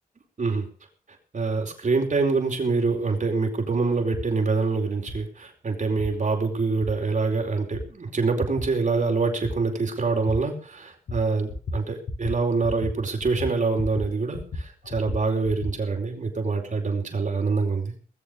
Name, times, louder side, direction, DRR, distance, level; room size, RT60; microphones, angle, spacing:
voice 1, 1.3-17.9, right 4 dB, 55° right, 3 dB, 4.8 m, -25 dB
sound 1, 4.1-4.3 5.1-5.2 6.0-6.1 6.8-6.9 7.7-7.9 8.6-8.7 9.4-9.6 10.3-10.4 11.1-11.2 11.5-11.8 12.1-12.4 12.6-12.9 13.2-14.1 14.3-15.7, left 2 dB, 80° left, 5.7 m, -32 dB
20.0 x 7.7 x 6.8 m, 0.41 s
cardioid pair, 45°, 15 cm